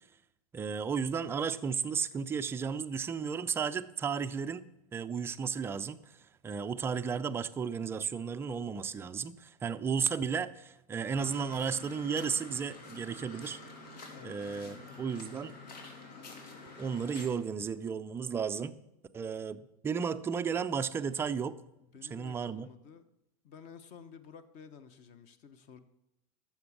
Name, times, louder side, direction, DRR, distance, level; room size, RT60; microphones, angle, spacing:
voice 1, 0.5-4.6 4.9-6.2 6.4-13.6 14.2-15.5 16.8-18.7 19.1-21.6 22.1-22.7, right 6 dB, 10° right, 0.4 m, -34 dB
sound 1, 11.1-17.3, left 3 dB, 85° left, 3.0 m, -48 dB
voice 2, 14.1-15.4 21.8-23.0 23.4-25.8, left 6 dB, 35° left, 1.0 m, -53 dB
13.0 x 7.1 x 7.2 m
supercardioid pair, 145°, 21 cm